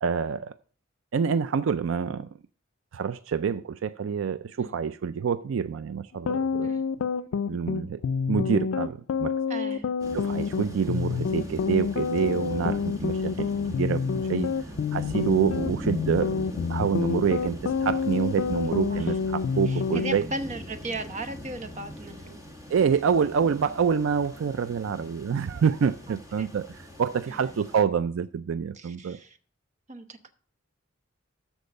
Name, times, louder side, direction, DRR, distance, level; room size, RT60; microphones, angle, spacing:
voice 1, 0.0-0.5 1.1-2.3 2.9-6.7 7.5-8.0 8.3-9.4 10.1-13.5 13.8-14.0 14.3-14.5 14.9-16.4 16.7-20.2 22.7-29.2, right 6 dB, 70° right, 0.4 m, -27 dB
sound 1, 6.1-20.2, left 5 dB, 75° left, 0.4 m, -28 dB
voice 2, 9.5-9.9 18.9-19.2 19.7-22.4 26.1-26.5 27.3-27.6 28.7-29.4 29.9-30.3, right 2 dB, 35° right, 0.9 m, -37 dB
sound 2, 10.0-27.8, equal, 20° right, 1.9 m, -40 dB
13.5 x 4.6 x 5.2 m
head